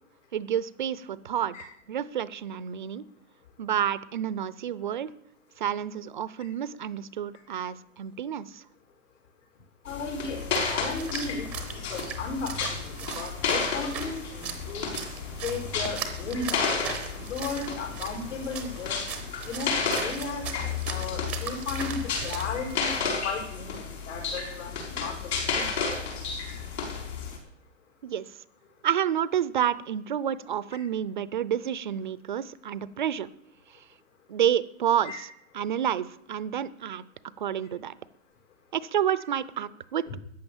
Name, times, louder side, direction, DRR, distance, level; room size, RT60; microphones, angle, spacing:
voice 1, 0.3-1.6 1.9-3.0 3.6-5.1 5.6-8.6 28.0-28.3 28.8-33.3 34.3-35.3 35.5-37.0 37.4-37.9 38.7-40.2, right 9 dB, 40° right, 18 dB, 0.5 m, -29 dB
voice 2, 9.8-15.1 15.4-19.0 19.4-20.5 20.9-25.7 30.7-30.8 35.0-35.2, left 4 dB, 70° left, 1 dB, 5.7 m, -35 dB
sound 1, 9.9-27.4, left 5 dB, 55° left, 5.8 m, -32 dB
Splash splatter, 10.0-22.8, right 7 dB, 5° right, 0.7 m, -39 dB
14.0 x 9.5 x 7.2 m, 0.79 s
hypercardioid pair, 170°, 38 cm